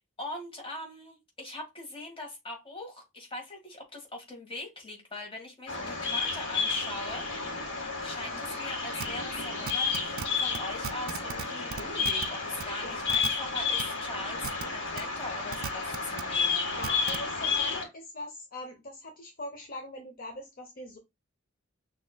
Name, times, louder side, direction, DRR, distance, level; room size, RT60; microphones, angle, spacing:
voice 1, 0.0-7.3 8.0-16.8, left 1 dB, 25° left, 1.8 m, -41 dB
Bird vocalization bird call bird song, 5.7-17.8, left 4 dB, 65° left, 1.9 m, -31 dB
sound 1, 9.0-9.1 9.7-10.3 10.5-10.6 10.8-11.4 11.7-12.3 12.6-12.7 13.1-13.3 13.8-13.9 14.4-14.6 15.0-15.1 15.5-16.2 16.8-17.2, right 7 dB, 50° right, 0.4 m, -35 dB
voice 2, 12.8-13.1 16.7-21.0, left 2 dB, 45° left, 0.8 m, -41 dB
6.1 x 3.0 x 2.3 m
head